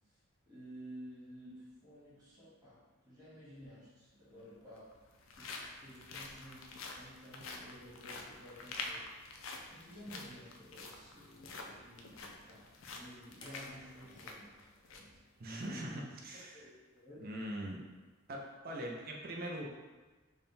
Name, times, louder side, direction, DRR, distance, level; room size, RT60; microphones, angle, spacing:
voice 1, 0.5-2.8 3.0-4.9 5.4-9.1 9.7-15.2 16.5-17.3, equal, 20° right, -10 dB, 1.4 m, -53 dB
sound 1, 3.6-3.7 4.6-15.2 15.6-15.7 16.2-16.4, left 3 dB, 75° left, 0.4 m, -48 dB
sound 2, 13.4-16.6 17.8-17.9, left 1 dB, 20° left, 0.5 m, -60 dB
voice 2, 15.4-16.7 17.2-17.8 18.3-19.7, right 1 dB, 45° right, 0 dB, 0.5 m, -42 dB
3.6 x 2.2 x 4.0 m, 1.3 s
head